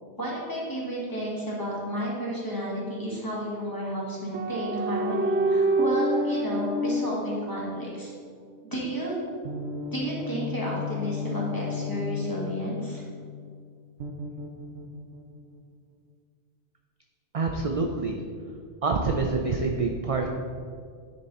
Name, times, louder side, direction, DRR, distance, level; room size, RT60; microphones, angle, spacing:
voice 1, 0.2-8.1 8.6-9.1 9.9-13.0, equal, 20° left, -5 dB, 1.7 m, -32 dB
sound 1, 4.3-8.0 9.4-13.2 14.0-15.2, equal, 70° right, 0.9 m, -29 dB
voice 2, 17.3-18.2 18.8-20.3, right 4 dB, 50° right, 2 dB, 0.4 m, -26 dB
9.8 x 4.2 x 4.1 m, 2.1 s
omnidirectional pair, 1.2 m